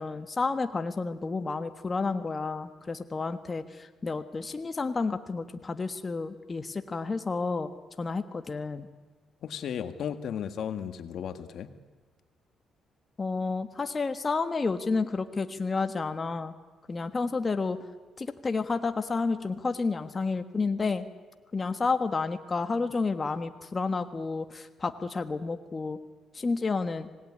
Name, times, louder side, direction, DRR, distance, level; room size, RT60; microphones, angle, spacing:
voice 1, 0.0-7.7 8.0-8.9 13.2-16.5 16.9-17.8 18.2-21.1 21.5-26.0 26.3-27.1, left 4 dB, 30° left, 8 dB, 1.4 m, -30 dB
voice 2, 9.4-11.7, left 8 dB, 70° left, 9 dB, 1.7 m, -35 dB
25.0 x 19.0 x 9.8 m, 1.3 s
cardioid pair, 90°, 0 cm